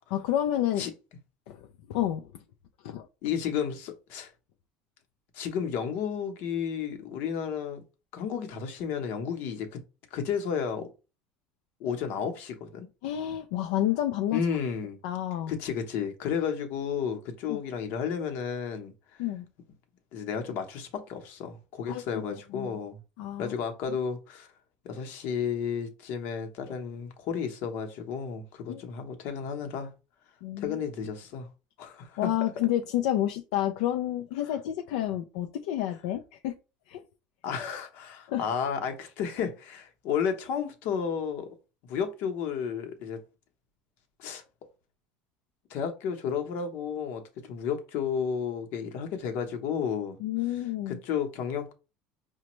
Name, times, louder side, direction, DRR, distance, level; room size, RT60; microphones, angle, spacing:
voice 1, 0.1-0.9 1.5-1.6 1.9-2.3 2.8-3.1 13.0-14.4 15.0-15.5 17.5-17.6 19.2-19.4 21.9-22.2 22.5-22.8 23.2-23.5 28.7-28.8 30.4-30.8 32.2-36.5 36.9-37.0 38.3-38.5 50.2-51.0, left 12 dB, 80° left, 0.4 m, -29 dB
voice 2, 3.2-4.3 5.3-7.8 8.1-9.8 10.1-10.9 11.8-12.9 14.3-15.0 15.5-19.2 20.1-23.0 23.4-24.5 24.8-29.9 30.6-31.5 31.8-32.3 37.4-41.5 41.8-43.2 44.2-44.4 45.7-50.2 50.5-51.7, left 7 dB, 60° left, 0.9 m, -32 dB
5.0 x 2.2 x 3.0 m
cardioid pair, 135°, 4 cm